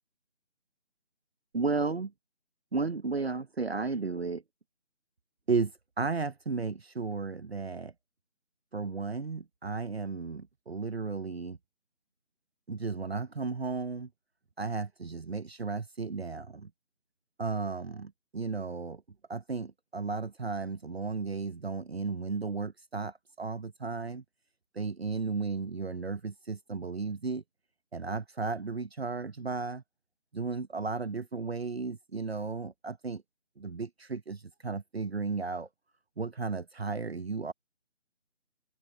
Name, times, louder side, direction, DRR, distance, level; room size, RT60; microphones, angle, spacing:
voice 1, 1.5-2.1 2.7-4.4 5.5-5.7 6.0-7.9 8.7-11.6 12.7-14.1 14.6-16.7 17.4-19.0 19.3-24.2 24.7-27.4 27.9-29.8 30.3-33.2 33.6-35.7 36.2-37.5, right 4 dB, 60° right, 1.1 m, -34 dB
figure-of-eight pair, 160°, 35 cm